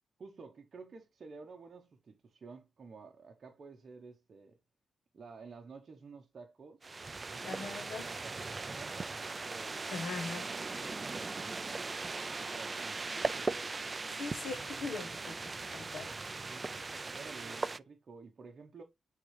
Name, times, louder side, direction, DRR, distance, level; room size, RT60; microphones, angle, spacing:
voice 1, 0.2-4.6 5.1-6.9 7.3-9.0 9.4-13.9 16.1-18.8, right 4 dB, 40° right, 0.9 m, -52 dB
sound 1, 6.8-17.8, right 3 dB, 20° right, 0.3 m, -39 dB
voice 2, 7.4-8.1 9.9-10.5 14.2-16.1, left 4 dB, 65° left, 1.3 m, -41 dB
9.6 x 3.7 x 3.2 m
wide cardioid pair, 180°, 0 cm